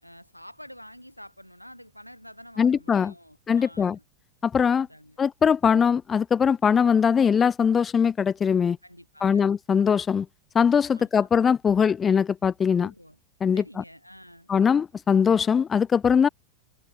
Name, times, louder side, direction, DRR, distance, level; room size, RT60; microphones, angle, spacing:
voice 1, 0.0-4.0 4.8-5.2 8.8-9.5 10.9-11.3 12.7-13.2 13.5-14.5, equal, 90° left, 3.0 m, -48 dB
voice 2, 2.6-3.1 3.5-4.0 4.4-4.9 5.2-8.8 9.2-10.3 10.5-12.9 13.4-13.6 14.5-16.3, left 7 dB, 20° left, 0.3 m, -21 dB
figure-of-eight pair, 90°, 0 cm